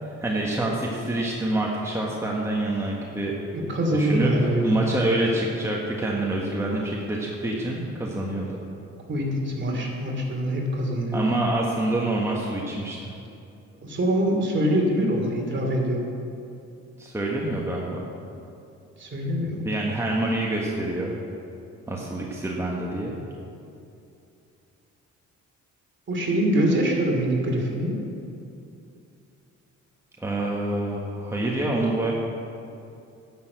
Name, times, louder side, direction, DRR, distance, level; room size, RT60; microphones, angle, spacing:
voice 1, 0.0-3.3 3.9-4.3 4.6-8.6 11.1-13.1 17.0-18.1 19.6-21.2 21.9-23.2 30.2-32.1, right 1 dB, 10° right, -3 dB, 1.6 m, -26 dB
voice 2, 3.5-4.8 9.1-11.4 13.8-16.1 19.0-19.7 26.1-28.0, right 1 dB, 40° right, 0 dB, 2.9 m, -24 dB
11.0 x 6.9 x 8.0 m, 2.6 s
cardioid pair, 90°, 30 cm